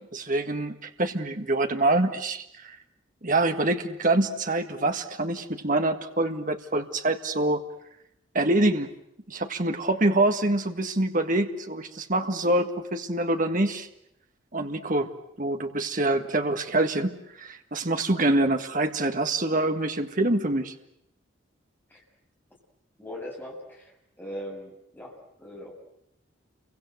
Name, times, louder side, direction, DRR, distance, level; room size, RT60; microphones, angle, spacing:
voice 1, 0.1-2.8 3.2-7.6 8.3-8.9 9.3-13.9 14.5-15.1 15.4-20.7, right 2 dB, 40° right, 6 dB, 1.8 m, -25 dB
voice 2, 23.0-25.7, equal, 10° left, -1 dB, 7.2 m, -40 dB
29.5 x 24.0 x 8.0 m, 0.80 s
head